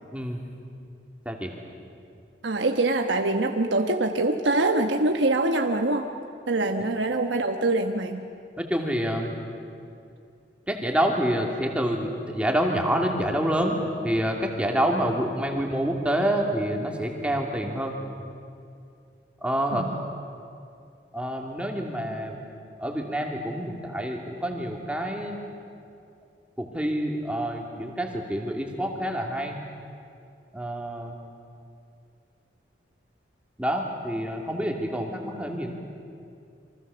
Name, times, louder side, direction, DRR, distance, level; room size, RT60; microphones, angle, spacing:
voice 1, 2.4-6.1 6.5-8.3 19.7-20.0, right 2 dB, 85° right, 4 dB, 1.3 m, -24 dB
voice 2, 8.6-9.4 10.7-13.8 14.0-17.9 19.4-19.9 21.1-22.4 22.8-25.4 26.6-29.6 30.5-31.2 33.6-35.7, equal, 5° right, 0 dB, 2.7 m, -27 dB
28.5 x 24.5 x 7.0 m, 2.4 s
head